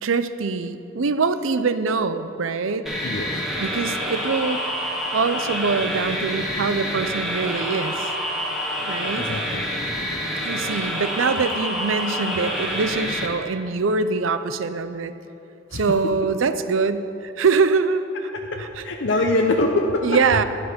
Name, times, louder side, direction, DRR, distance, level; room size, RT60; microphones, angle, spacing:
voice 1, 0.0-2.9 3.6-4.6 5.1-8.1 8.8-9.3 10.4-15.1 15.7-18.0 18.6-18.8 20.0-20.4, right 4 dB, 75° right, 11 dB, 0.6 m, -23 dB
sound 1, 2.9-13.3, equal, ahead, 1.5 m, -27 dB
voice 2, 9.2-9.6 15.7-15.8 18.5-20.1, left 2 dB, 65° left, 2 dB, 0.8 m, -23 dB
12.0 x 10.5 x 5.2 m, 2.9 s
head